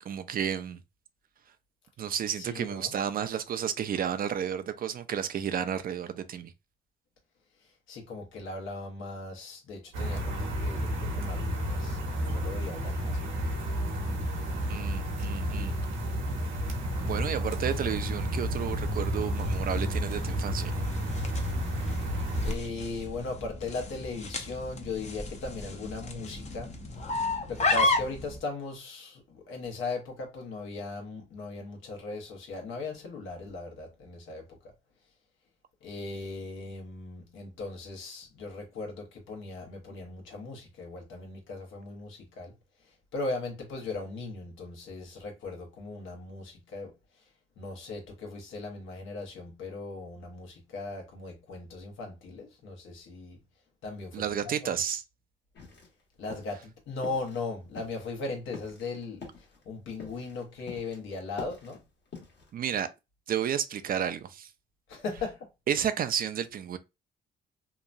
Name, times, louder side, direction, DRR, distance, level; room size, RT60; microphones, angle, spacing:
voice 1, 0.1-0.8 2.0-6.5 14.7-15.7 17.0-20.7 54.1-55.0 62.5-62.9 63.3-64.5 65.7-66.8, right 9 dB, 50° right, 0.4 m, -31 dB
voice 2, 2.4-2.9 7.9-12.0 12.2-13.4 22.4-26.7 27.5-34.7 35.8-42.5 43.1-46.9 47.6-53.4 53.8-54.7 56.2-61.8 64.9-65.5, left 3 dB, 80° left, 1.1 m, -38 dB
sound 1, 9.9-22.5, equal, 80° right, 0.9 m, -31 dB
sound 2, 16.9-28.4, left 2 dB, 35° left, 0.6 m, -34 dB
sound 3, 55.5-56.0 56.3-56.6 57.0-57.5 57.8-61.0 61.3-62.6, left 4 dB, 60° left, 1.3 m, -45 dB
2.9 x 2.2 x 2.5 m
cardioid pair, 90°, 20 cm